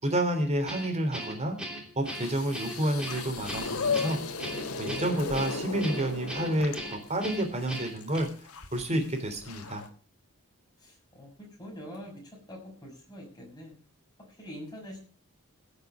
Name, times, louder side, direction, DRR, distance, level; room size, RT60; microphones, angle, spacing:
voice 1, 0.0-1.5 2.0-4.2 4.8-8.3 8.7-9.8, right 1 dB, 30° right, 5 dB, 3.2 m, -29 dB
Guitar, 0.7-8.2, right 1 dB, 5° right, 3.2 m, -39 dB
sound 1, 2.0-7.1, left 3 dB, 75° left, 2.2 m, -38 dB
sound 2, 3.1-9.9, left 5 dB, 90° left, 1.5 m, -37 dB
voice 2, 10.8-13.8 14.2-15.0, equal, 20° left, -1 dB, 6.2 m, -45 dB
16.5 x 6.8 x 7.1 m, 0.41 s
head